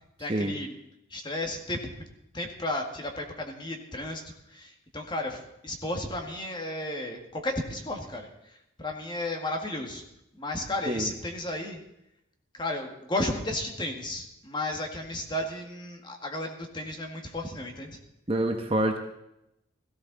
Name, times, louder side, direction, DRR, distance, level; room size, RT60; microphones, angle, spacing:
voice 1, 0.2-0.7 1.1-1.8 2.3-10.0 10.3-11.8 12.5-18.0, left 1 dB, 20° left, 2 dB, 1.9 m, -33 dB
voice 2, 18.3-19.0, right 1 dB, 25° right, 4 dB, 1.1 m, -26 dB
17.5 x 15.0 x 4.1 m, 0.83 s
head